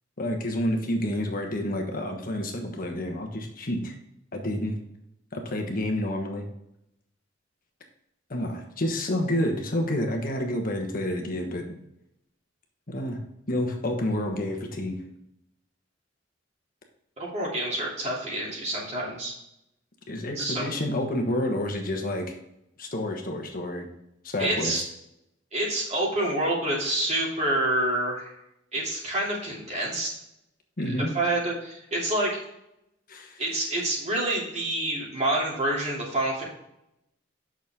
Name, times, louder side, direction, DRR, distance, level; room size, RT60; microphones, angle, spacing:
voice 1, 0.2-3.9 4.3-4.8 5.3-6.4 8.3-11.8 12.9-13.2 13.5-15.0 20.1-22.3 22.8-23.9 24.2-24.8 30.8-31.1 33.1-33.4, left 1 dB, 50° left, 3 dB, 1.3 m, -29 dB
voice 2, 17.2-19.3 20.4-20.7 24.4-24.8 25.5-28.3 28.7-30.1 31.1-32.3 33.4-36.4, right 1 dB, 35° right, -4 dB, 2.9 m, -27 dB
8.4 x 6.3 x 3.6 m, 0.82 s
head